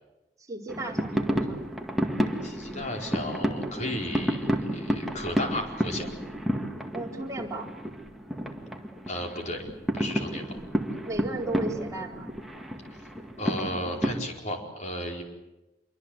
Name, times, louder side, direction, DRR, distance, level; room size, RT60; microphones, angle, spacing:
voice 1, 0.5-1.6 6.9-7.7 11.0-12.3, right 2 dB, 20° right, -1 dB, 4.1 m, -35 dB
sound 1, 0.7-14.2, equal, ahead, 2.0 m, -31 dB
voice 2, 2.4-6.1 9.1-9.6 9.9-10.5 13.4-15.2, left 1 dB, 40° left, 2 dB, 4.7 m, -34 dB
27.0 x 24.0 x 8.1 m, 0.98 s
head